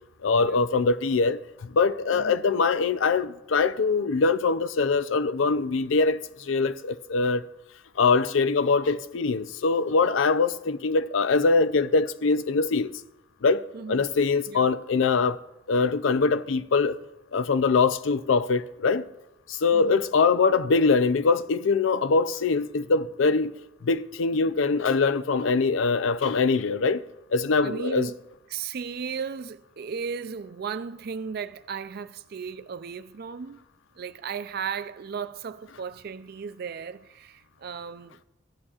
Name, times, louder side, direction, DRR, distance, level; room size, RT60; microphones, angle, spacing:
voice 1, 0.2-1.4 1.7-7.4 8.0-12.9 13.4-13.6 13.9-15.4 15.7-17.0 17.3-19.0 19.5-23.5 23.8-27.0 27.3-28.1, left 4 dB, 90° left, 0.5 m, -23 dB
voice 2, 2.1-2.4 13.7-14.1 14.5-14.7 19.7-20.0 27.6-33.6 34.0-38.2, right 6 dB, 55° right, 0.4 m, -36 dB
15.0 x 11.0 x 2.4 m
head